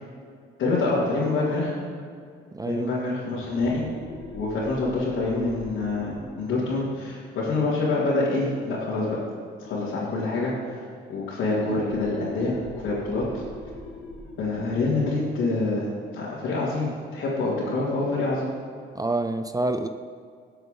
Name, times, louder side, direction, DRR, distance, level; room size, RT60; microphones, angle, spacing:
voice 1, 0.6-1.7 2.7-3.8 4.3-9.2 9.6-10.8 11.1-12.5 12.8-13.4 14.4-15.9 16.1-18.5, left 3 dB, 80° left, -9 dB, 3.0 m, -26 dB
voice 2, 2.5-2.9 18.9-19.9, right 2 dB, 20° right, 8 dB, 0.5 m, -27 dB
sound 1, 3.2-8.5 11.6-16.8, left 2 dB, 65° left, 2.7 m, -43 dB
18.0 x 7.9 x 3.9 m, 2.1 s
cardioid pair, 90°, 20 cm